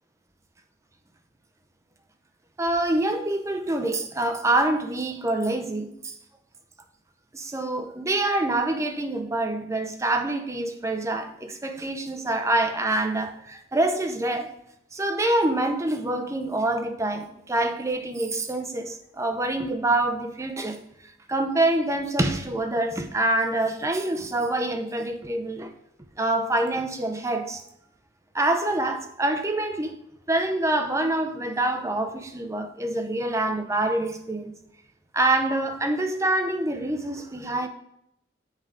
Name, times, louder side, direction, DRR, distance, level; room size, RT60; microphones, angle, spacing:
voice 1, 2.6-6.1 7.3-14.5 14.9-20.8 21.3-25.7 26.2-27.6 28.3-30.0 30.3-34.5 35.1-37.7, right 2 dB, 15° right, 0.5 m, -26 dB
8.8 x 3.7 x 3.6 m
head